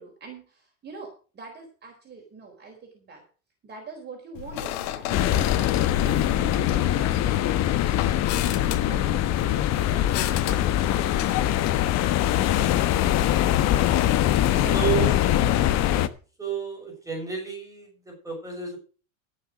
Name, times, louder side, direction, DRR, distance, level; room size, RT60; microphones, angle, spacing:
voice 1, 0.0-3.2 3.6-5.7 6.0-7.6 8.0-11.4 14.5-15.1 15.4-15.7, right 4 dB, 25° right, 1 dB, 4.3 m, -42 dB
sound 1, 4.3-16.1, left 11 dB, 65° left, 1.6 m, -34 dB
sound 2, 5.1-16.1, left 12 dB, 40° left, 1.1 m, -23 dB
voice 2, 14.7-15.1 16.4-18.8, right 7 dB, 10° right, 1 dB, 6.2 m, -31 dB
14.5 x 6.7 x 6.4 m, 0.36 s
supercardioid pair, 120°, 41 cm